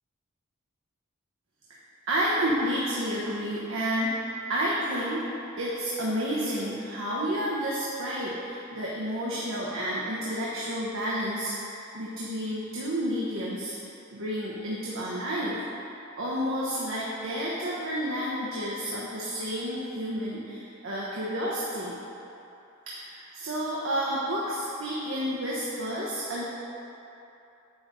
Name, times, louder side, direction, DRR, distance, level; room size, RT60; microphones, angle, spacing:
voice 1, 2.1-5.2 5.6-13.8 14.1-15.6 16.2-22.0 22.9-26.4, equal, 70° right, -7 dB, 1.0 m, -30 dB
9.0 x 3.6 x 5.5 m, 2.9 s
head